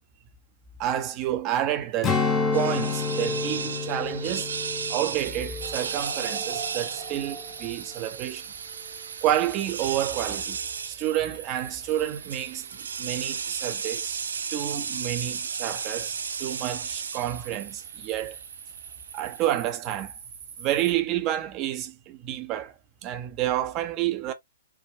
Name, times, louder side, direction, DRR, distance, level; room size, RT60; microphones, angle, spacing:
voice 1, 0.8-2.3 2.5-4.5 4.9-8.5 9.2-10.6 10.9-14.2 14.5-18.4 19.1-20.1 20.6-22.7 23.0-24.3, right 12 dB, 30° right, 0.6 m, -29 dB
Strum, 2.0-6.7 7.1-7.3, left 4 dB, 20° left, 0.7 m, -29 dB
sound 1, 2.5-19.4, right 6 dB, 85° right, 0.4 m, -35 dB
sound 2, 5.2-20.9, right 6 dB, 55° right, 1.5 m, -42 dB
3.4 x 2.2 x 2.3 m
hypercardioid pair, 135°, 0 cm